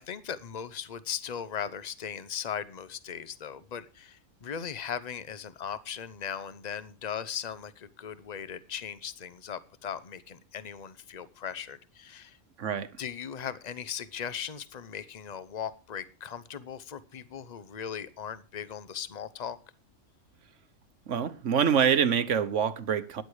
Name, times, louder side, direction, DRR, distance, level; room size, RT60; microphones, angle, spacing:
voice 1, 0.0-12.4 13.0-19.6, left 8 dB, 35° left, 0.9 m, -38 dB
voice 2, 12.6-12.9 21.1-23.2, right 7 dB, 70° right, 1.3 m, -25 dB
13.5 x 10.5 x 4.8 m
omnidirectional pair, 1.4 m